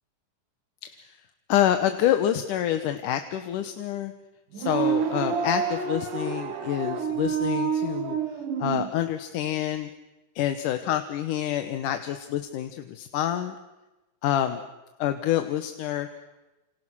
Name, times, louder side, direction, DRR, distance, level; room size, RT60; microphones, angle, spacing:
voice 1, 0.8-1.2 1.5-4.1 4.5-8.2 8.6-9.9 10.4-13.6 14.2-14.6 15.0-16.1, left 11 dB, 75° left, 8 dB, 2.6 m, -27 dB
sound 1, 4.5-8.9, right 6 dB, 75° right, 3.5 m, -28 dB
29.5 x 27.5 x 6.2 m, 1.1 s
omnidirectional pair, 3.9 m